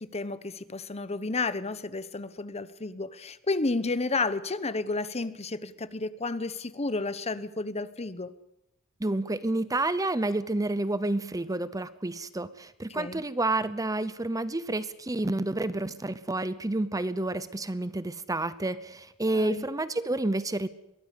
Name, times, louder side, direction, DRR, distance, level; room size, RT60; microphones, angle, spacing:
voice 1, 0.0-8.3 12.9-13.2 19.3-19.6, left 3 dB, 30° left, 15 dB, 1.0 m, -32 dB
voice 2, 9.0-20.7, right 2 dB, 15° right, 15 dB, 0.8 m, -29 dB
22.5 x 17.5 x 8.5 m, 0.86 s
head